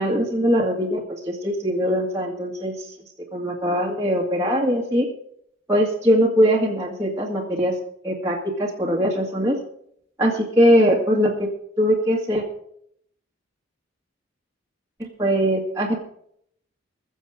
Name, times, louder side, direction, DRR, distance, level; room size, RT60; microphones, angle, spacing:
voice 1, 0.0-2.9 3.3-5.1 5.7-7.7 8.0-9.6 10.2-11.5 11.8-12.4 15.0-16.0, equal, 15° right, -5 dB, 1.8 m, -21 dB
21.5 x 7.2 x 5.0 m, 0.68 s
head